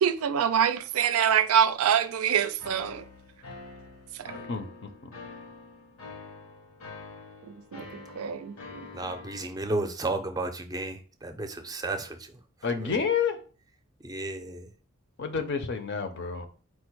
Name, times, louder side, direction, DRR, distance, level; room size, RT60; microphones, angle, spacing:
voice 1, 0.0-3.1 4.1-4.4 7.4-8.9, right 8 dB, 90° right, 0.4 m, -26 dB
sound 1, 2.6-9.4, left 3 dB, 85° left, 0.9 m, -46 dB
voice 2, 8.9-12.4 12.8-13.0 14.0-14.7, right 2 dB, 20° right, 0.5 m, -33 dB
voice 3, 12.6-13.4 15.2-16.5, left 6 dB, 55° left, 0.6 m, -29 dB
4.5 x 2.1 x 4.5 m
head